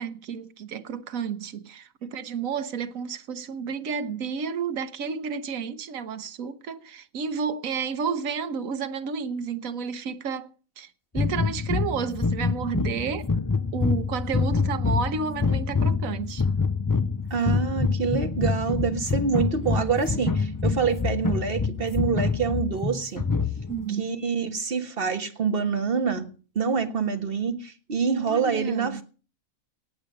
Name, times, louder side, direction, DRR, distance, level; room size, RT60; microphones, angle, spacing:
voice 1, 0.0-13.3 13.7-16.5 23.7-24.1 28.1-29.0, right 6 dB, 80° right, 1.4 m, -31 dB
sound 1, 11.1-23.8, left 4 dB, 25° left, 0.4 m, -26 dB
voice 2, 17.3-23.2 24.0-26.3 26.5-29.0, right 5 dB, 45° right, 1.7 m, -26 dB
18.0 x 7.1 x 7.7 m
omnidirectional pair, 1.4 m